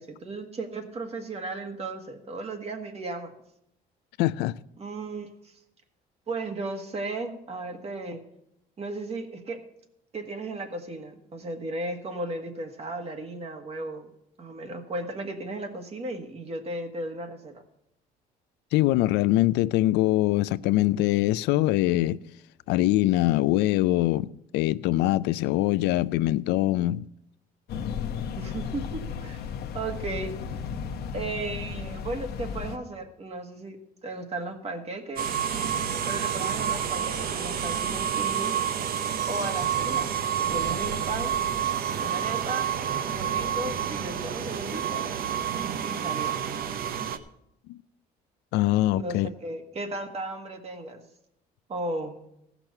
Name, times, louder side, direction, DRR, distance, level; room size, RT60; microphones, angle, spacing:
voice 1, 0.0-3.3 4.8-5.6 6.3-8.2 8.8-9.6 10.1-14.1 14.4-17.6 28.4-29.4 29.7-30.4 31.1-33.8 34.0-35.3 36.0-38.5 39.3-41.4 42.0-42.8 43.1-45.1 45.8-46.3 48.9-51.0 51.7-52.2, right 2 dB, 35° right, 1.7 m, -35 dB
voice 2, 4.2-4.6 18.7-22.2 22.7-27.1 47.7-47.8 48.5-49.3, left 16 dB, 90° left, 0.4 m, -23 dB
sound 1, 27.7-32.8, left 6 dB, 70° left, 1.0 m, -34 dB
sound 2, 35.2-47.2, right 8 dB, 65° right, 0.9 m, -29 dB
15.5 x 6.0 x 6.6 m
cardioid pair, 110°, 17 cm